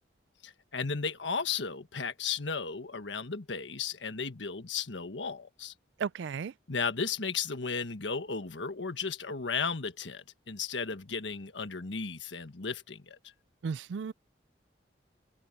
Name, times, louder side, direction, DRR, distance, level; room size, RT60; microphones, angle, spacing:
voice 1, 0.4-5.7 6.7-13.2, left 5 dB, 85° left, 1.5 m, -35 dB
voice 2, 6.0-6.5 13.6-14.1, right 6 dB, 80° right, 0.4 m, -34 dB
head